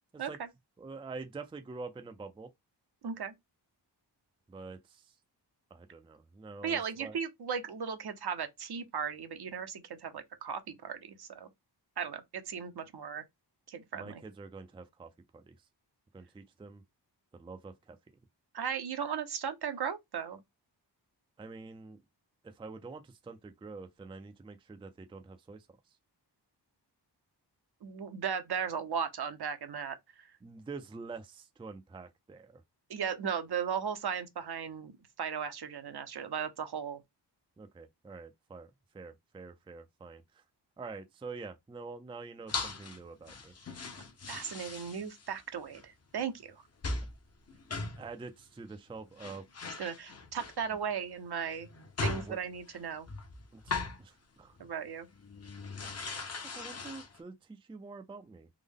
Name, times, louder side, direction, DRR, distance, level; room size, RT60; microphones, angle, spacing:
voice 1, 0.8-2.5 4.5-5.1 5.7-7.2 13.9-15.5 16.1-16.8 17.3-18.0 21.4-22.0 22.4-25.7 30.4-32.6 37.6-40.4 40.8-43.5 48.0-49.5 52.2-52.4 53.5-54.6 56.6-58.5, right 4 dB, 15° right, 0.4 m, -46 dB
voice 2, 3.0-3.3 6.6-11.5 12.0-13.2 13.7-14.2 18.5-20.4 27.8-30.0 32.9-34.9 35.2-37.0 44.3-46.6 49.8-51.7 52.0-53.1 54.6-55.1, right 7 dB, 60° right, 0.7 m, -36 dB
sound 1, 42.5-43.0 43.3-45.4 45.7-45.8 46.8-47.2 47.5-48.1 48.9-49.0 49.2-50.8 51.5-54.0 54.6-54.7 55.1-57.2, left 3 dB, 35° left, 0.7 m, -39 dB
3.6 x 2.1 x 3.5 m
wide cardioid pair, 105°, 43 cm